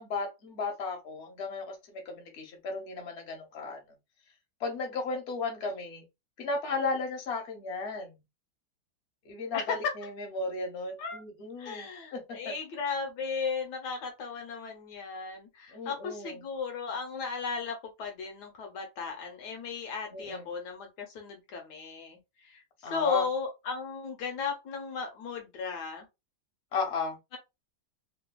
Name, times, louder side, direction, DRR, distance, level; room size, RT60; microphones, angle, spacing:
voice 1, 0.0-3.8 4.6-6.0 6.4-8.2 9.2-12.5 15.7-16.4 20.1-20.5 22.8-23.3 26.7-27.2, left 4 dB, 50° left, 0.9 m, -35 dB
voice 2, 9.5-9.9 11.0-11.2 11.6-26.1, left 5 dB, 65° left, 1.1 m, -35 dB
3.3 x 2.2 x 2.2 m
omnidirectional pair, 2.2 m